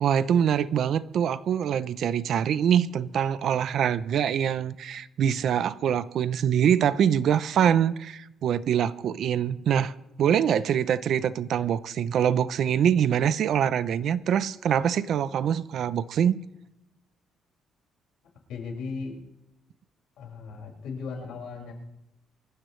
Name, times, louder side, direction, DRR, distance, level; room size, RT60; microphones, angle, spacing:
voice 1, 0.0-9.9 10.2-16.4, right 9 dB, 50° right, 0.6 m, -24 dB
voice 2, 18.5-19.1 20.2-21.7, left 4 dB, 75° left, 5.5 m, -36 dB
24.0 x 15.0 x 3.2 m
cardioid pair, 170°, 0 cm